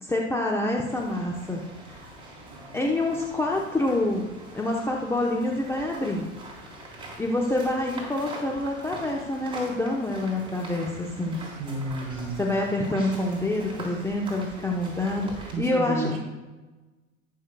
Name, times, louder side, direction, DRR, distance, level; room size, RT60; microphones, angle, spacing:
voice 1, 0.0-1.6 1.9-2.0 2.7-4.2 4.5-6.2 7.2-11.4 12.4-16.2, left 2 dB, 5° left, -1 dB, 0.9 m, -27 dB
sound 1, 0.8-15.5, right 1 dB, 15° right, 3.6 m, -43 dB
voice 2, 11.6-12.4 15.5-16.2, right 2 dB, 35° right, 0 dB, 3.4 m, -31 dB
19.5 x 6.5 x 2.3 m, 1.1 s
figure-of-eight pair, 80°, 39 cm